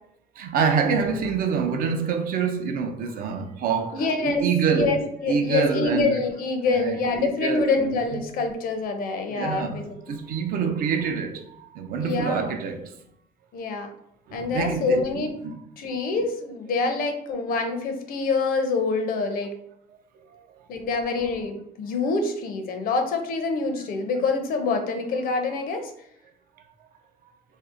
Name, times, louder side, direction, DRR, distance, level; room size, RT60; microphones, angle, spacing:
voice 1, 0.4-4.9 5.3-6.2 6.7-8.2 9.3-12.9 14.3-15.6 20.3-20.4, right 6 dB, 60° right, 0.4 m, -26 dB
voice 2, 3.9-4.5 4.7-10.0 12.0-12.5 13.5-13.9 14.3-15.3 15.8-19.6 20.7-25.9, left 4 dB, 60° left, 0.5 m, -26 dB
2.6 x 2.0 x 2.5 m
cardioid pair, 110°, 17 cm